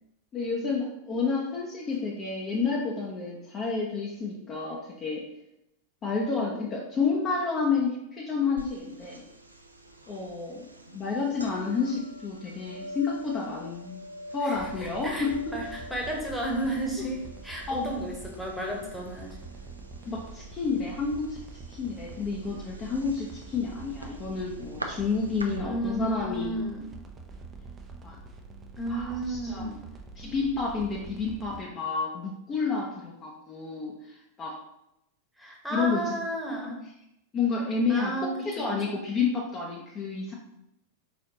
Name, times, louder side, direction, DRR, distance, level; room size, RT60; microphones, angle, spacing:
voice 1, 0.3-5.3 6.0-9.2 10.1-10.7 10.9-14.0 14.3-15.5 17.0-17.1 17.7-18.0 20.0-21.4 21.7-26.6 28.0-28.2 28.9-29.7 30.2-34.6 35.7-36.2 36.6-36.7 37.3-40.3, left 4 dB, 25° left, -2 dB, 0.7 m, -30 dB
sound 1, 8.6-25.6, equal, 85° right, 0.4 m, -45 dB
voice 2, 14.4-19.4 25.6-26.9 28.8-29.8 35.4-36.8 37.9-39.0, right 1 dB, ahead, -2 dB, 1.1 m, -33 dB
sound 2, 14.5-31.7, right 4 dB, 20° right, 0.6 m, -45 dB
4.1 x 4.0 x 2.9 m, 0.83 s
figure-of-eight pair, 90°, 0 cm